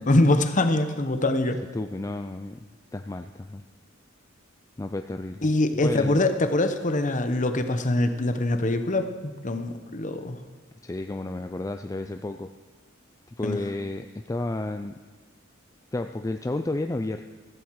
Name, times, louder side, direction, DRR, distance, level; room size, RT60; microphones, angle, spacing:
voice 1, 0.0-1.6 5.4-10.4 13.4-13.6, left 2 dB, 40° left, 8 dB, 1.0 m, -24 dB
voice 2, 1.7-3.6 4.8-5.5 5.8-6.2 10.8-12.5 13.4-14.9 15.9-17.2, left 2 dB, 15° left, 6 dB, 0.4 m, -31 dB
15.0 x 14.5 x 4.7 m, 1.4 s
head